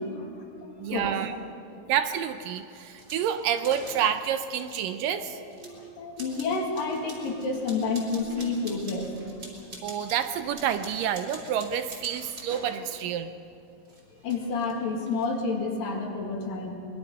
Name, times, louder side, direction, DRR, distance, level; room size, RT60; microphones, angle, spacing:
voice 1, 0.0-1.1 1.7-1.8 3.4-3.5 5.1-9.1 14.2-16.8, left 4 dB, 70° left, 0 dB, 4.0 m, -30 dB
voice 2, 0.8-1.4 1.9-5.4 9.8-13.3, right 9 dB, 75° right, 9 dB, 2.2 m, -28 dB
sound 1, 1.7-1.8 2.1-4.7 5.9-6.0 6.6-9.9 10.2-13.2 13.8-15.3, right 1 dB, 55° right, 5.4 m, -52 dB
sound 2, 3.0-4.1 4.5-5.7 6.2-12.6 13.8-14.7, right 1 dB, 30° right, 4.7 m, -46 dB
24.0 x 21.5 x 5.5 m, 2.7 s
omnidirectional pair, 4.2 m